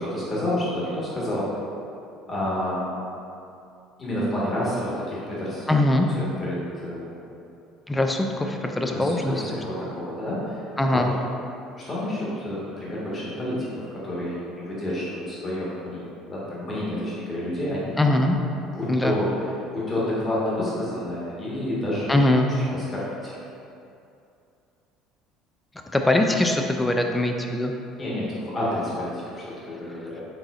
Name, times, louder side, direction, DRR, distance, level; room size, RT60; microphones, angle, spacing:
voice 1, 0.0-1.5 2.3-2.9 4.0-5.6 6.1-7.2 8.9-10.6 10.9-11.1 11.8-18.0 18.7-19.3 19.7-22.2 22.4-23.4 28.0-30.2, left 1 dB, 35° left, -8 dB, 1.5 m, -29 dB
voice 2, 5.7-6.1 7.9-9.3 10.8-11.1 18.0-18.4 18.9-19.1 22.1-22.5 25.9-27.7, left 1 dB, 10° left, 3 dB, 0.4 m, -22 dB
4.1 x 3.8 x 2.5 m, 2.6 s
hypercardioid pair, 75°, 0 cm